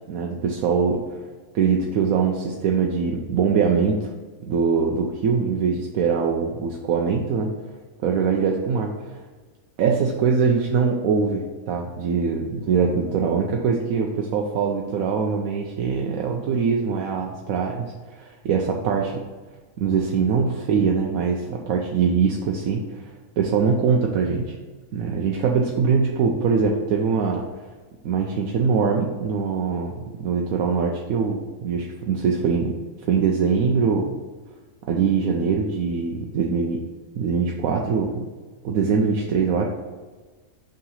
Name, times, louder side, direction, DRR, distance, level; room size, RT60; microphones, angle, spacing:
voice 1, 0.1-1.0 1.5-4.1 4.5-7.5 8.0-9.2 9.8-19.2 19.8-24.5 24.9-27.4 28.0-32.7 33.1-34.1 34.9-36.8 37.2-38.3 38.6-39.7, right 5 dB, 85° right, 0 dB, 1.1 m, -23 dB
5.6 x 3.8 x 5.4 m, 1.4 s
omnidirectional pair, 1.4 m